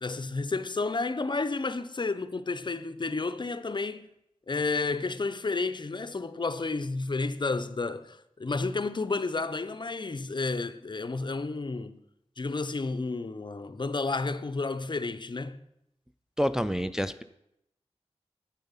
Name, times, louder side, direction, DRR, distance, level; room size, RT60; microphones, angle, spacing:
voice 1, 0.0-4.1 4.5-12.0 12.4-15.6, left 3 dB, 40° left, 0.6 m, -31 dB
voice 2, 16.4-17.2, equal, 5° right, 0.4 m, -28 dB
8.8 x 7.3 x 5.6 m
cardioid pair, 50°, 12 cm